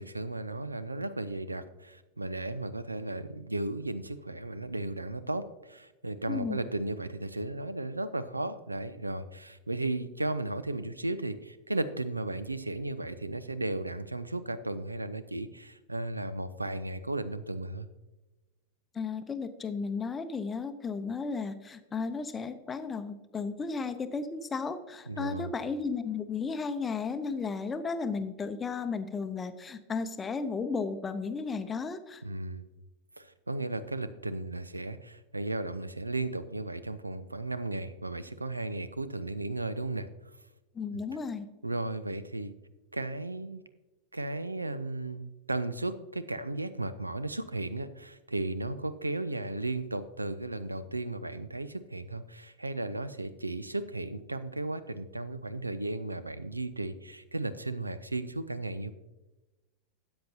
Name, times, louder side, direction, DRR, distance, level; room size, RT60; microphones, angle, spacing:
voice 1, 0.0-17.9 25.1-25.5 32.2-32.6 33.2-40.1 41.6-42.5 42.9-43.6 44.1-58.9, right 2 dB, 85° right, 14 dB, 0.4 m, -35 dB
voice 2, 6.3-6.6 18.9-32.2 40.7-41.5, left 5 dB, 20° left, 10 dB, 0.7 m, -34 dB
13.0 x 8.7 x 2.8 m, 1.1 s
figure-of-eight pair, 90°, 0 cm